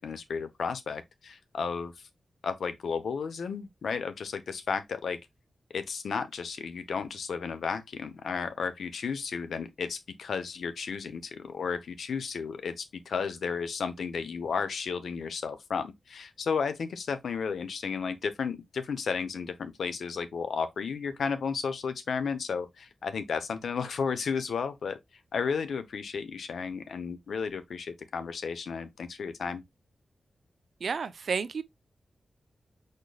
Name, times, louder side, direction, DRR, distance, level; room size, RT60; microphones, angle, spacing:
voice 1, 0.0-1.9 2.4-5.2 5.7-25.0 25.3-29.6, left 5 dB, 85° left, 0.7 m, -33 dB
voice 2, 30.8-31.6, right 5 dB, 70° right, 0.4 m, -31 dB
4.8 x 4.4 x 2.3 m
wide cardioid pair, 80°, 0 cm